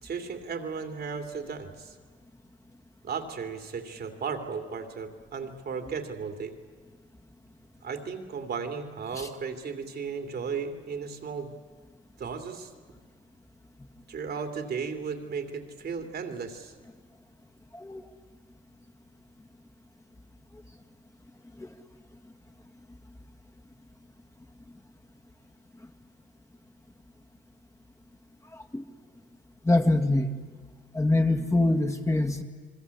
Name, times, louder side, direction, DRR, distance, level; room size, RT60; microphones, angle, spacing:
voice 1, 0.0-1.9 3.0-6.5 7.8-11.5 12.2-12.7 14.1-16.7, right 5 dB, 55° right, 6 dB, 2.8 m, -35 dB
voice 2, 28.5-28.8 29.6-30.3 30.9-32.4, left 2 dB, 15° left, 5 dB, 1.9 m, -24 dB
28.5 x 21.0 x 8.4 m, 1.5 s
cardioid pair, 90°, 20 cm